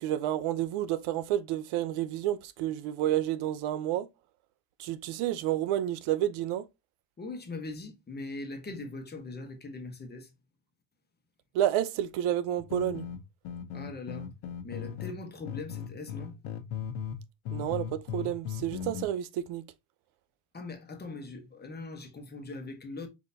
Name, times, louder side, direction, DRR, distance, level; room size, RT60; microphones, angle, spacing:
voice 1, 0.0-4.1 4.8-6.6 11.5-13.0 17.5-17.9 18.1-19.6, right 12 dB, 90° right, 0.8 m, -30 dB
voice 2, 7.2-10.3 13.7-14.4 14.6-16.3 20.5-23.1, left 3 dB, 20° left, 1.1 m, -41 dB
sound 1, 12.6-15.1 15.5-17.2 17.4-19.0, left 8 dB, 85° left, 1.0 m, -37 dB
4.8 x 3.9 x 2.8 m
cardioid pair, 135°, 48 cm